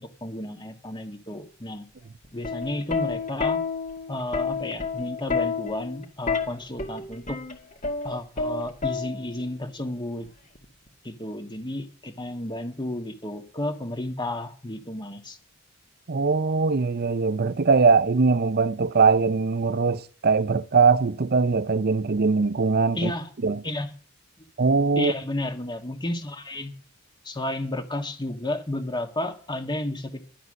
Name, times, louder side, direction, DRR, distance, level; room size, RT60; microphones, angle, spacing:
voice 1, 0.0-1.8 2.3-3.6 4.1-7.4 8.0-10.3 11.0-15.4 22.9-23.3 23.6-23.9 24.9-26.7 27.2-30.2, left 1 dB, 20° left, 1.7 m, -32 dB
Plucked string instrument, 2.2-9.5 10.6-10.9, left 5 dB, 40° left, 2.2 m, -29 dB
voice 2, 16.1-23.1 23.4-23.6 24.6-25.1, right 4 dB, 50° right, 0.6 m, -21 dB
12.5 x 10.5 x 6.4 m
head